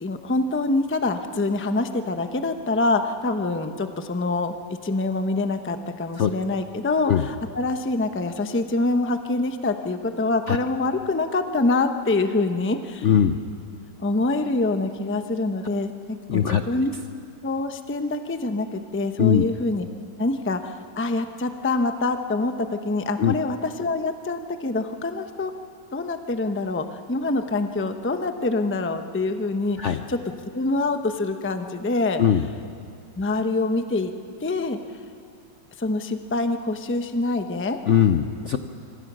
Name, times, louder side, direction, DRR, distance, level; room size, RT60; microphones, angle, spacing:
voice 1, 0.0-13.1 14.0-15.9 16.3-16.9 17.4-19.9 20.2-25.5 25.9-30.2 30.5-32.2 33.2-34.1 34.4-34.8 35.8-37.8, left 2 dB, 10° left, 7 dB, 0.5 m, -25 dB
voice 2, 13.0-13.4 16.3-16.6 19.2-19.4 23.2-23.4 29.8-30.0 32.2-32.5 37.8-38.6, left 9 dB, 60° left, 8 dB, 0.8 m, -20 dB
25.5 x 25.0 x 6.2 m, 2.4 s
omnidirectional pair, 1.9 m